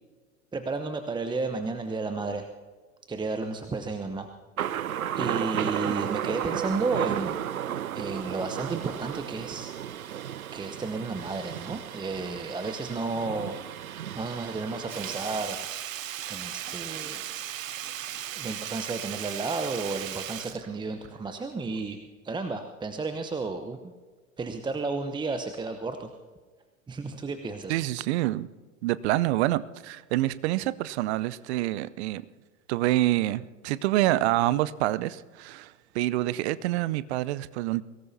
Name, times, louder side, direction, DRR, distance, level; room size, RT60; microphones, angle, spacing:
voice 1, 0.5-2.5 3.1-4.3 5.1-7.4 7.9-9.7 10.5-13.6 14.1-15.6 16.3-17.2 18.4-22.0 22.2-23.9 24.4-26.1 26.9-27.8, right 3 dB, 10° right, 7 dB, 0.9 m, -32 dB
Thunder, 4.6-15.5, right 10 dB, 90° right, 0.6 m, -34 dB
Sink (filling or washing), 14.9-21.4 21.7-21.8, right 11 dB, 70° right, 1.0 m, -37 dB
voice 2, 27.7-28.5 28.8-32.2 32.7-37.8, right 16 dB, 50° right, 17 dB, 0.7 m, -27 dB
23.0 x 18.5 x 2.8 m, 1.4 s
hypercardioid pair, 95°, 41 cm